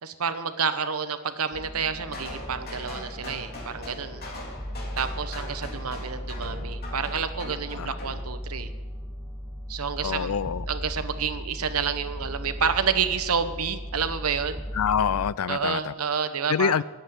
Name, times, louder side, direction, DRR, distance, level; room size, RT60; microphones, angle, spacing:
voice 1, 0.0-4.2 5.0-8.7 9.7-10.3 10.7-14.6 15.5-16.8, right 6 dB, 90° right, 10 dB, 1.0 m, -29 dB
sound 1, 1.5-15.3, equal, 10° left, 0.9 m, -37 dB
sound 2, 2.1-8.2, left 2 dB, 45° left, 2.5 m, -41 dB
voice 2, 10.0-10.6 14.7-15.9 16.5-16.8, left 7 dB, 90° left, 19 dB, 0.4 m, -25 dB
11.0 x 8.3 x 9.9 m, 1.3 s
head